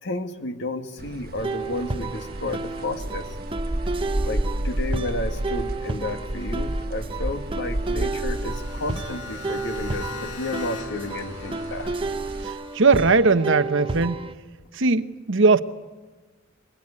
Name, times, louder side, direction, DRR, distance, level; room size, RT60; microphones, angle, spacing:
voice 1, 0.0-3.4 4.3-11.9, left 2 dB, 55° left, 1.8 m, -32 dB
sound 1, 1.0-12.4, right 1 dB, 45° right, 1.3 m, -31 dB
Classical Acousitic Guitar Smart Strings Scientific Method, 1.4-14.3, right 3 dB, 25° right, 0.9 m, -32 dB
sound 2, 7.9-12.9, left 4 dB, 90° left, 2.3 m, -40 dB
voice 2, 12.4-14.2 14.8-15.6, right 3 dB, 60° right, 1.0 m, -19 dB
23.0 x 21.0 x 9.8 m
head